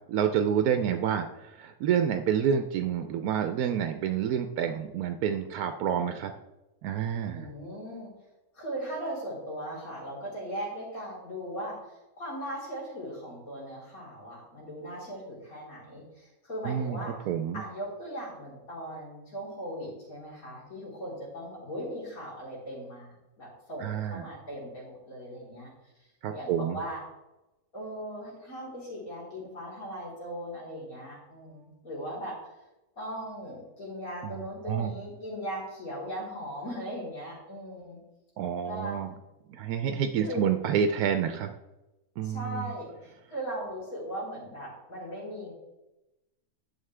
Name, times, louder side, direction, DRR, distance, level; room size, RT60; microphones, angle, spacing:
voice 1, 0.1-6.3 6.8-7.5 16.6-17.0 17.3-17.6 23.8-24.3 26.2-26.8 34.2-34.9 38.4-39.1 39.5-41.5 42.2-42.7, right 8 dB, 90° right, 7 dB, 1.1 m, -28 dB
voice 2, 7.3-8.1 8.5-17.2 17.5-25.7 26.3-27.0 27.7-32.4 33.0-38.0 38.6-39.0 40.2-40.4 42.2-45.5, equal, 70° left, -6 dB, 4.3 m, -38 dB
11.0 x 7.1 x 3.3 m, 0.98 s
omnidirectional pair, 1.5 m